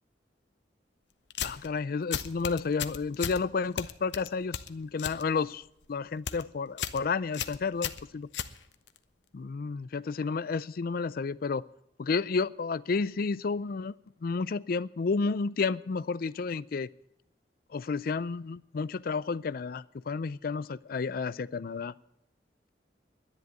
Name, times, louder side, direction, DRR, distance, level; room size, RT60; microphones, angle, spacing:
sound 1, 1.3-1.7 2.1-3.4 3.8-5.2 5.5-5.9 6.1-6.4 6.8-7.0 7.3-9.0, left 8 dB, 80° left, 0.8 m, -35 dB
voice 1, 1.4-5.6 5.9-8.3 9.3-11.6 12.0-13.9 14.2-16.9 17.7-21.9, left 4 dB, 55° left, 19 dB, 0.4 m, -31 dB
10.5 x 10.5 x 9.4 m, 0.79 s
head